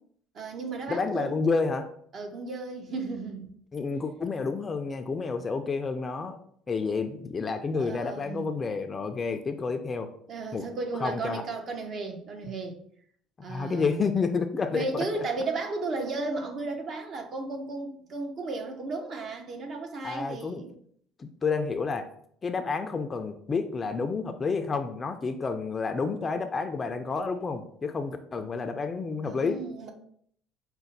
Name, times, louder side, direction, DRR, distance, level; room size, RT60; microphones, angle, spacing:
voice 1, 0.3-1.4 2.1-3.5 7.7-8.5 10.3-12.8 13.4-14.0 14.7-20.8 29.2-29.9, right 3 dB, 50° right, 3 dB, 0.8 m, -34 dB
voice 2, 0.9-1.9 3.7-6.4 6.7-10.1 10.5-10.7 11.0-11.4 13.5-15.2 20.0-20.6 21.2-22.1 22.4-29.6, left 4 dB, 30° left, 7 dB, 0.4 m, -30 dB
5.1 x 2.2 x 3.9 m, 0.63 s
supercardioid pair, 100°, 0 cm